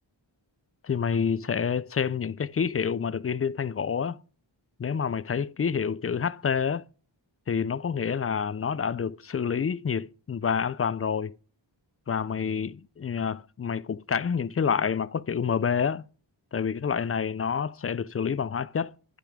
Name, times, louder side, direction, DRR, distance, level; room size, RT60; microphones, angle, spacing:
voice 1, 0.8-4.2 4.8-6.8 7.5-11.3 12.1-16.0 16.5-18.9, left 6 dB, 35° left, 0.4 m, -28 dB
10.0 x 5.8 x 3.6 m
wide cardioid pair, 90°, 46 cm